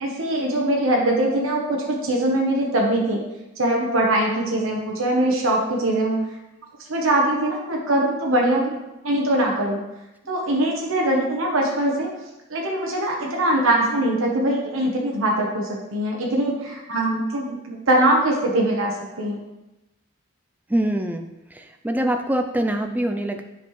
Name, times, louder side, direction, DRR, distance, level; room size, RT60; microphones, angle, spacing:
voice 1, 0.0-3.2 3.6-6.3 6.9-8.8 9.0-9.8 10.3-12.1 12.5-19.4, right 1 dB, 85° right, -1 dB, 1.0 m, -22 dB
voice 2, 20.7-21.3 21.8-23.4, right 1 dB, 10° right, 5 dB, 0.4 m, -23 dB
7.3 x 5.3 x 3.1 m, 0.97 s
head